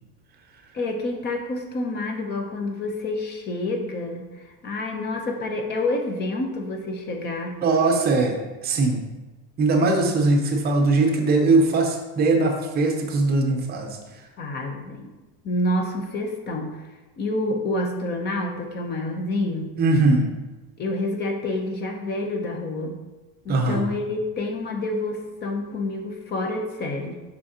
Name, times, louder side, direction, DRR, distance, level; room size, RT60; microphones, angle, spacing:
voice 1, 0.7-7.6 14.4-15.1 15.4-16.8 17.2-19.7 20.8-23.0 23.4-27.2, left 2 dB, 25° left, 4 dB, 0.6 m, -28 dB
voice 2, 7.6-9.0 9.6-14.0 19.8-20.3 23.5-23.9, right 3 dB, 25° right, 3 dB, 0.7 m, -20 dB
6.1 x 5.7 x 2.8 m, 1.1 s
cardioid pair, 160°, 42 cm